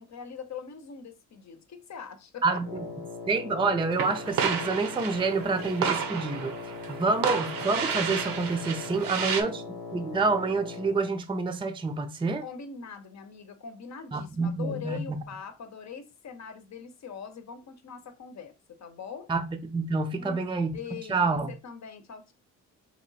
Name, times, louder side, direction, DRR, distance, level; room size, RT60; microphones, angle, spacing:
voice 1, 0.0-2.6 9.1-9.7 12.4-19.3 20.2-20.5 20.7-22.3, left 6 dB, 55° left, 0.9 m, -42 dB
Wind instrument woodwind instrument, 2.6-11.2, left 4 dB, 85° left, 0.9 m, -40 dB
voice 2, 3.3-6.6 6.9-9.6 9.9-12.4 14.1-15.2 19.3-20.7 21.1-21.5, right 3 dB, 15° right, 0.5 m, -27 dB
sound 1, 4.0-9.4, right 6 dB, 80° right, 0.8 m, -32 dB
3.1 x 3.0 x 4.0 m
cardioid pair, 75°, 34 cm